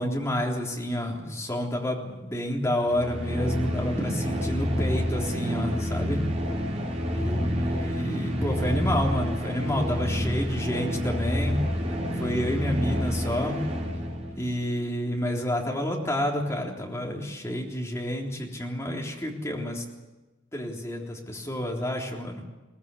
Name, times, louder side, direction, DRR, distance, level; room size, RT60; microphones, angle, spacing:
voice 1, 0.0-6.2 7.1-11.6 12.2-13.6 14.4-19.8 20.5-22.4, left 1 dB, 15° left, -1 dB, 3.6 m, -29 dB
sound 1, 2.8-14.4, equal, 35° right, 4.4 m, -28 dB
22.0 x 19.0 x 8.4 m, 1.2 s
head